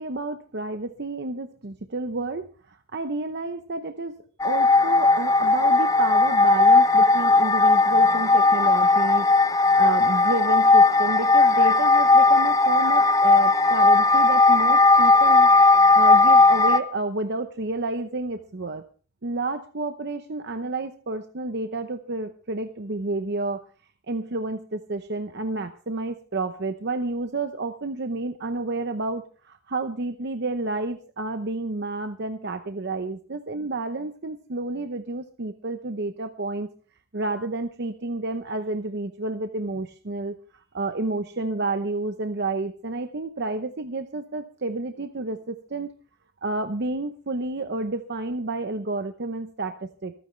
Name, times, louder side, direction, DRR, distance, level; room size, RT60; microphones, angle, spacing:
voice 1, 0.0-4.1 4.4-18.8 19.2-23.6 24.1-36.7 37.1-45.9 46.4-50.1, right 2 dB, 55° right, 7 dB, 0.8 m, -30 dB
sound 1, 4.4-16.8, left 3 dB, 15° left, 0.8 m, -17 dB
25.5 x 9.4 x 3.2 m, 0.39 s
head